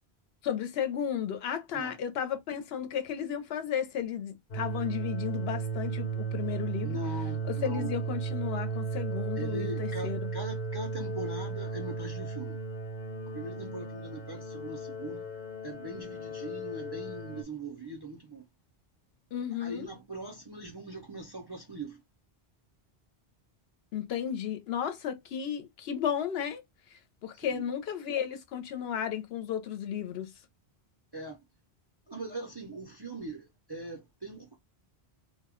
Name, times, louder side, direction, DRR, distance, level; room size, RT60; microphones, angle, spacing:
voice 1, 0.4-7.0 7.5-10.2 19.3-19.9 23.9-26.6 27.2-30.3, left 9 dB, 75° left, 0.8 m, -33 dB
sound 1, 4.5-17.4, right 4 dB, 50° left, 0.8 m, -35 dB
voice 2, 6.8-8.0 9.3-12.6 13.3-18.5 19.5-22.0 27.3-27.7 31.1-31.5 32.1-34.5, right 2 dB, 35° right, 0.4 m, -41 dB
2.2 x 2.1 x 3.5 m
omnidirectional pair, 1.1 m